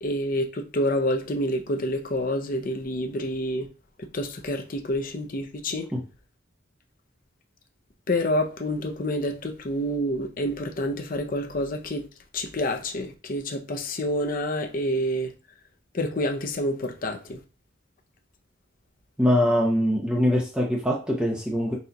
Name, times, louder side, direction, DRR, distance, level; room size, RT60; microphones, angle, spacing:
voice 1, 0.0-3.7 4.0-5.9 8.1-12.1 12.3-15.3 15.9-17.4, left 1 dB, 45° left, 0.6 m, -28 dB
voice 2, 19.2-21.8, equal, 5° right, 0.6 m, -23 dB
4.2 x 2.3 x 3.9 m
head